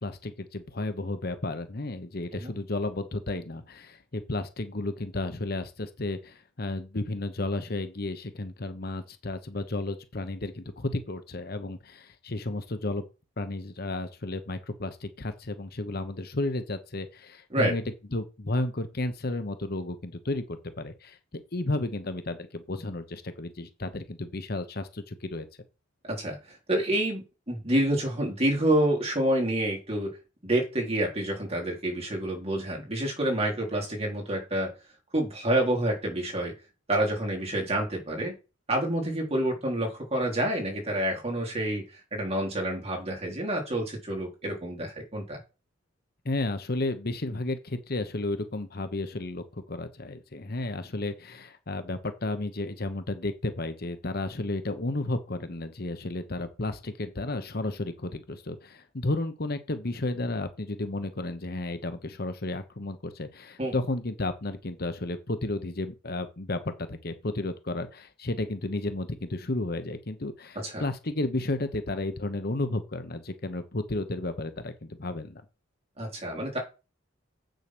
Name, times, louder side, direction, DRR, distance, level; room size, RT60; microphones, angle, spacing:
voice 1, 0.0-13.1 13.4-17.8 18.1-25.5 46.2-75.4, left 2 dB, 50° left, 1.0 m, -33 dB
voice 2, 26.7-30.1 30.4-34.7 35.1-36.5 36.9-38.4 38.7-41.8 42.1-45.4 63.6-63.7 70.6-70.8 76.0-76.6, right 1 dB, 30° right, 4.1 m, -28 dB
8.1 x 6.5 x 6.2 m
head